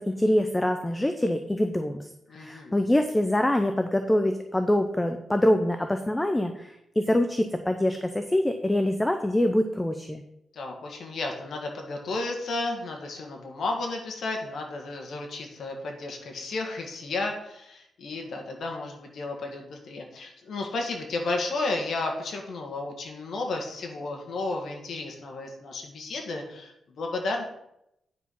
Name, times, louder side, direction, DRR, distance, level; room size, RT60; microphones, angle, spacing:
voice 1, 0.0-10.2, left 1 dB, 10° left, 7 dB, 0.6 m, -25 dB
voice 2, 2.3-2.7 10.5-27.4, left 2 dB, 60° left, 2 dB, 1.8 m, -33 dB
9.6 x 4.7 x 5.5 m, 0.81 s
wide cardioid pair, 130°, 0 cm